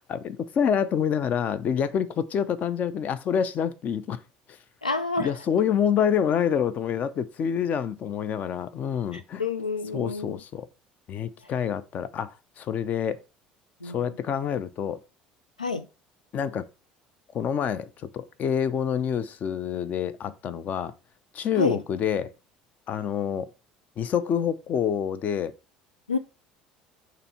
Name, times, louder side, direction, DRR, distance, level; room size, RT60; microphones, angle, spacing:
voice 1, 0.1-4.2 4.5-4.6 5.2-9.4 9.9-10.7 11.1-13.2 13.8-15.0 16.3-16.7 17.3-20.9 21.3-22.3 22.9-23.5 24.0-25.5, left 8 dB, 40° left, 0.6 m, -27 dB
voice 2, 4.8-5.3 9.1-10.4 13.8-14.1 15.6-15.9 21.6-21.8 26.1-26.2, left 3 dB, 90° left, 0.3 m, -28 dB
6.7 x 3.1 x 5.5 m
figure-of-eight pair, 60°, 4 cm